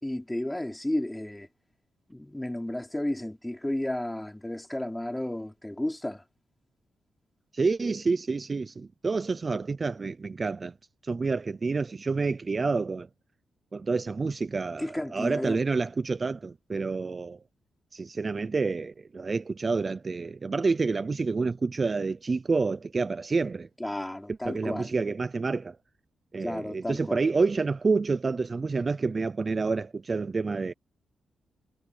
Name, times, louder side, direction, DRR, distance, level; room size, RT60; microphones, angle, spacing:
voice 1, 0.0-1.5 2.1-6.2 14.8-15.6 23.8-25.0 26.4-27.2, left 1 dB, 5° left, 4.8 m, -32 dB
voice 2, 7.5-10.7 11.0-13.1 13.7-17.4 17.9-23.7 24.5-25.8 26.3-30.7, right 4 dB, 30° right, 0.5 m, -28 dB
wide cardioid pair, 135°, 0 cm